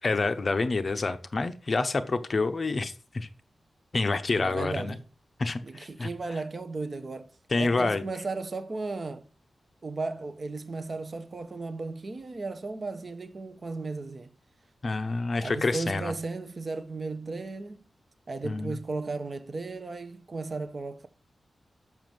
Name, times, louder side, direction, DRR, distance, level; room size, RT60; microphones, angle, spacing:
voice 1, 0.0-3.3 3.9-4.9 5.4-6.1 7.5-8.0 14.8-16.1 18.4-18.8, left 3 dB, 40° left, 0.8 m, -28 dB
voice 2, 4.4-5.0 5.6-9.3 9.8-14.3 15.4-17.9 18.3-21.1, right 3 dB, 35° right, 0.9 m, -35 dB
7.1 x 6.1 x 7.7 m
wide cardioid pair, 155°, 0 cm